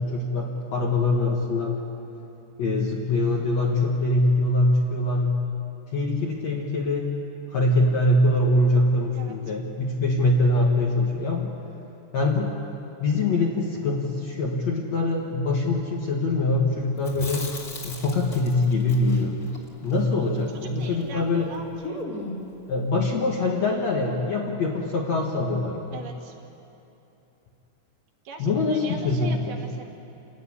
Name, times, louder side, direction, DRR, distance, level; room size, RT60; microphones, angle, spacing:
voice 1, 0.0-1.8 2.6-5.4 5.9-7.1 7.5-11.5 12.1-12.6 13.0-17.5 17.8-19.4 19.8-21.6 22.7-26.1 28.4-29.6, left 2 dB, 55° left, -1 dB, 2.1 m, -23 dB
Chewing mastication, 17.0-21.2 21.4-21.5 21.8-22.6, left 1 dB, 30° left, 2.2 m, -38 dB
voice 2, 20.5-22.0 25.9-26.4 28.3-29.8, right 4 dB, 70° right, 1 dB, 3.5 m, -41 dB
28.5 x 13.5 x 9.7 m, 2.9 s
omnidirectional pair, 4.8 m